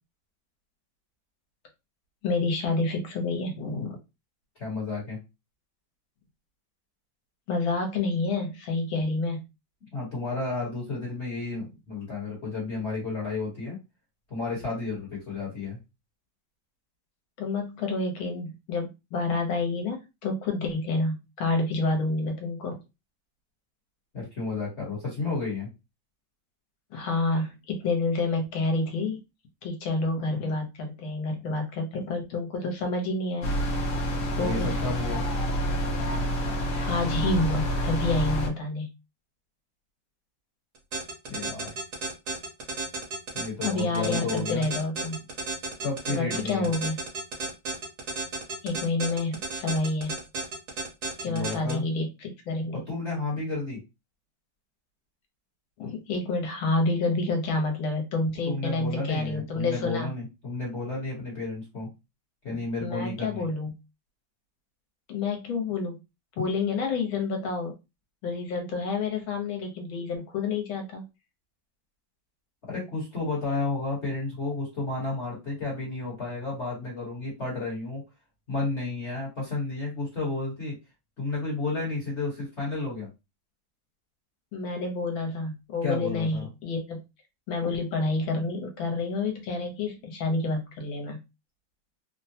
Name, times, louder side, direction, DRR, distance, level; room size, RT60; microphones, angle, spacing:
voice 1, 2.2-4.0 7.5-9.4 17.4-22.7 26.9-29.2 29.6-33.5 34.4-34.8 36.8-38.9 43.6-45.2 46.1-47.0 48.6-50.2 51.2-52.8 55.8-60.1 62.5-63.7 65.1-66.0 66.4-67.7 68.2-71.0 84.5-87.0 87.5-91.2, left 3 dB, 75° left, 3 dB, 1.6 m, -28 dB
voice 2, 4.6-5.2 9.9-13.8 14.3-15.8 24.1-25.7 34.4-35.3 41.3-41.7 43.3-44.7 45.8-46.7 51.2-51.8 52.7-53.8 58.5-61.9 62.4-63.5 72.7-78.0 78.5-80.7 81.2-83.1 85.8-86.5, left 3 dB, 40° left, -4 dB, 1.3 m, -32 dB
sound 1, 33.4-38.5, equal, 60° left, 1.1 m, -28 dB
sound 2, 40.8-51.7, right 3 dB, 55° right, 1.5 m, -32 dB
3.7 x 2.2 x 2.8 m, 0.25 s
omnidirectional pair, 2.2 m